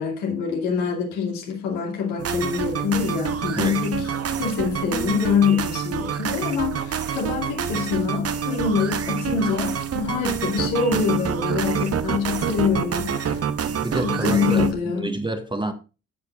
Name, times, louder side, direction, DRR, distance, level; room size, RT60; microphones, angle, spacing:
voice 1, 0.0-4.1 4.4-13.5 14.0-15.1, left 6 dB, 70° left, 2.6 m, -25 dB
sound 1, 2.2-14.7, right 7 dB, 35° right, 1.0 m, -27 dB
voice 2, 13.6-15.7, right 2 dB, 10° right, 1.4 m, -28 dB
14.5 x 8.1 x 2.5 m
figure-of-eight pair, 40°, 39 cm